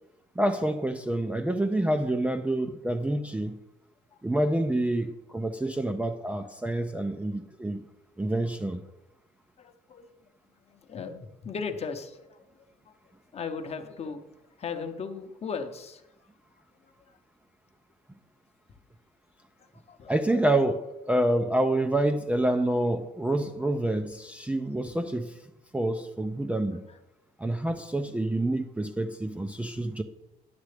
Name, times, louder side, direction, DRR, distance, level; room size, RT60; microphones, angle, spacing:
voice 1, 0.4-3.6 4.2-7.8 8.2-8.8 20.1-25.3 25.7-26.9 27.4-30.0, right 1 dB, 10° right, 0.4 m, -27 dB
voice 2, 9.6-10.2 10.7-12.6 13.3-14.2 14.6-16.0 16.8-17.2 19.9-20.1 26.9-27.0, left 5 dB, 40° left, 0.8 m, -37 dB
10.5 x 7.3 x 3.3 m
cardioid pair, 110°, 17 cm